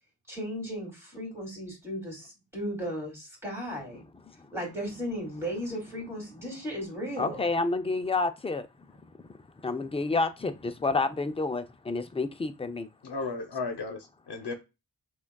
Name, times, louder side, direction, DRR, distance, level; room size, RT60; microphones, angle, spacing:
voice 1, 0.3-4.0 4.5-7.5, equal, 5° right, 2.3 m, -36 dB
voice 2, 7.2-8.7 9.6-12.9, left 3 dB, 15° left, 0.3 m, -29 dB
voice 3, 13.0-14.5, left 3 dB, 80° left, 0.7 m, -34 dB
6.0 x 2.3 x 2.2 m
wide cardioid pair, 85°, 40 cm